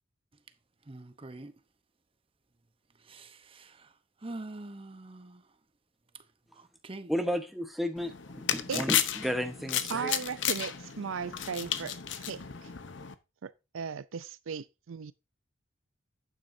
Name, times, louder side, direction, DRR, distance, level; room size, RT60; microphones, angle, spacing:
voice 1, 0.9-1.5 3.0-3.9 4.2-5.4 6.6-7.1, right 2 dB, 25° right, 0.8 m, -44 dB
voice 2, 7.1-10.1, equal, ahead, 1.0 m, -33 dB
sound 1, 8.0-13.1, left 10 dB, 65° left, 0.8 m, -33 dB
voice 3, 9.9-12.7 13.4-15.1, right 6 dB, 80° right, 0.5 m, -37 dB
11.0 x 9.3 x 2.7 m
head